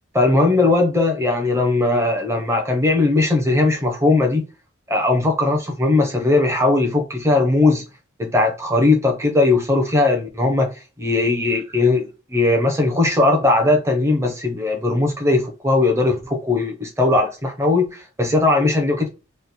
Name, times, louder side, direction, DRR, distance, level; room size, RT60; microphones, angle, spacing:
voice 1, 0.1-4.4 4.9-7.8 8.2-10.7 11.0-19.1, left 2 dB, 15° right, 0.8 m, -18 dB
3.2 x 2.2 x 4.1 m
head